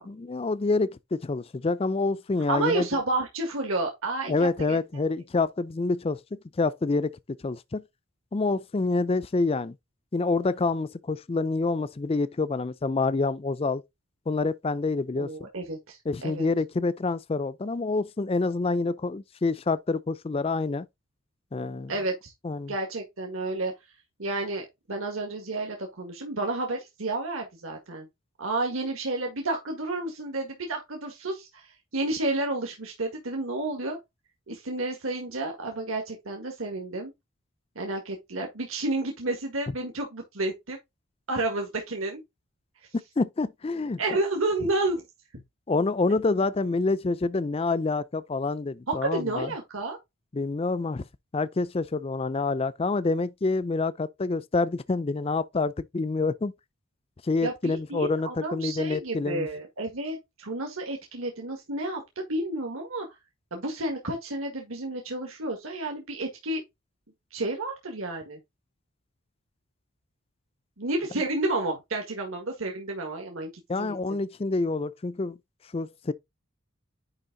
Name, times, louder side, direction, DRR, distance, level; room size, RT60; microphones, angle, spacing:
voice 1, 0.1-2.9 4.3-7.8 8.3-9.8 10.1-13.8 14.3-15.5 16.1-20.9 21.5-21.9 22.4-22.7 43.2-44.0 45.7-49.5 50.3-51.1 51.3-56.5 57.2-59.5 73.7-75.4 75.7-76.1, left 3 dB, 25° left, 0.4 m, -27 dB
voice 2, 2.5-5.0 15.2-16.5 21.9-22.3 22.7-23.7 24.2-28.1 28.4-31.7 31.9-34.0 34.5-37.1 37.8-40.8 41.3-42.2 44.0-45.0 48.9-50.0 57.4-62.0 62.3-63.1 63.5-66.6 67.3-68.4 70.8-73.5 73.8-73.9, right 2 dB, 75° right, 1.8 m, -31 dB
10.0 x 3.5 x 3.8 m
head